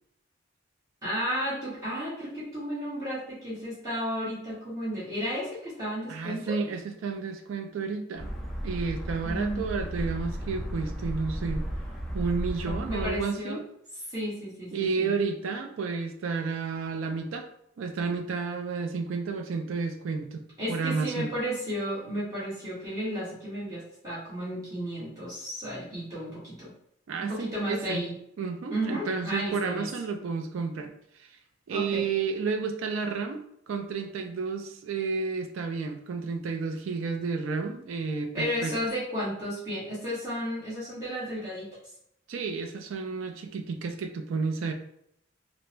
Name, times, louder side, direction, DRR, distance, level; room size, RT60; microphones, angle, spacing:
voice 1, 1.0-6.6 9.2-9.6 12.6-13.6 14.1-15.1 20.6-26.7 27.2-28.1 28.7-29.9 31.7-32.1 38.3-41.7, equal, 20° right, -11 dB, 1.3 m, -33 dB
voice 2, 6.1-8.3 8.6-11.6 12.1-13.6 14.7-17.5 17.8-21.3 27.1-28.0 28.4-30.9 31.2-31.3 31.7-38.7 42.3-44.7, right 4 dB, 90° right, 6 dB, 0.4 m, -31 dB
sound 1, 8.2-13.2, equal, ahead, 0.5 m, -34 dB
3.3 x 2.0 x 3.1 m, 0.73 s
head